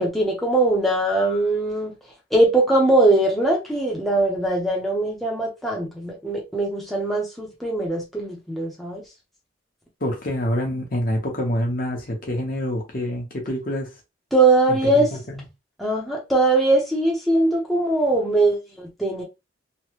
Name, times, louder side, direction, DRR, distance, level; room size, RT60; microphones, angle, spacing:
voice 1, 0.0-1.9 2.3-9.0 14.3-15.1 15.8-19.2, right 2 dB, ahead, 0.6 m, -21 dB
voice 2, 10.0-13.9 14.8-15.4, left 1 dB, 50° left, 1.0 m, -26 dB
3.1 x 2.1 x 2.9 m
head